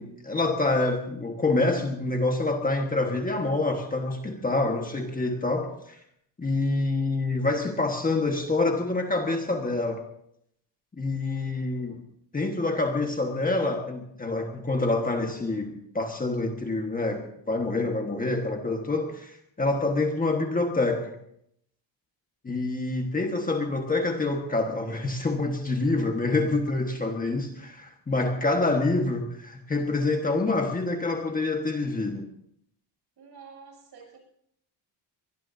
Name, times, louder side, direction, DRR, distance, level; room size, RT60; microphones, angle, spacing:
voice 1, 0.0-6.0 6.4-10.0 11.0-12.0 12.3-21.1 22.4-32.3, left 2 dB, 20° left, 2 dB, 1.4 m, -27 dB
voice 2, 28.5-28.8 33.2-34.2, right 5 dB, 55° right, 0 dB, 7.9 m, -48 dB
24.5 x 20.5 x 2.7 m, 0.72 s
cardioid pair, 170°, 45 cm